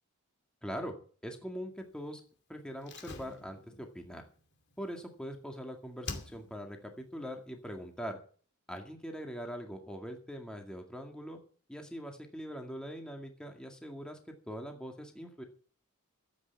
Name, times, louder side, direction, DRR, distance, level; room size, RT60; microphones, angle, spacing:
voice 1, 0.6-1.0 1.2-2.2 2.5-4.2 4.8-8.2 8.7-11.4 11.7-14.2 14.5-15.4, equal, 5° left, 3 dB, 2.1 m, -42 dB
Slam, 2.8-5.6 6.0-6.8 7.0-7.1, left 3 dB, 50° left, 2.4 m, -46 dB
14.5 x 8.6 x 7.2 m, 0.42 s
head